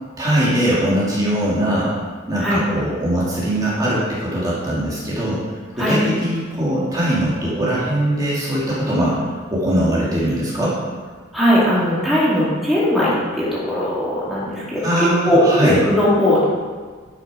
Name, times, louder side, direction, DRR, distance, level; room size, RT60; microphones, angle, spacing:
voice 1, 0.2-1.9 2.3-5.4 5.7-10.8 14.8-15.8, right 1 dB, 20° right, -8 dB, 2.3 m, -21 dB
voice 2, 11.3-16.5, equal, ahead, -9 dB, 2.3 m, -18 dB
11.0 x 6.6 x 4.9 m, 1.5 s
head